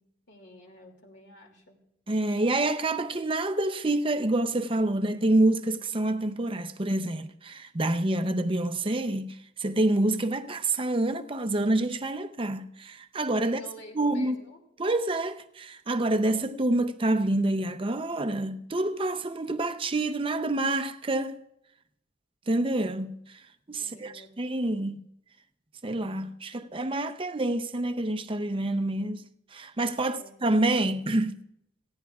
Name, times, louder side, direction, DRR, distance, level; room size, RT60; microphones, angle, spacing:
voice 1, 0.3-1.8 13.4-14.6 23.8-24.4 30.0-30.4, equal, 60° left, 2.6 m, -50 dB
voice 2, 2.1-13.6 13.9-14.4 14.8-21.4 22.5-23.4 23.7-25.0 25.8-29.3 29.5-31.4, right 2 dB, 25° right, 0.7 m, -27 dB
18.5 x 15.5 x 2.4 m
head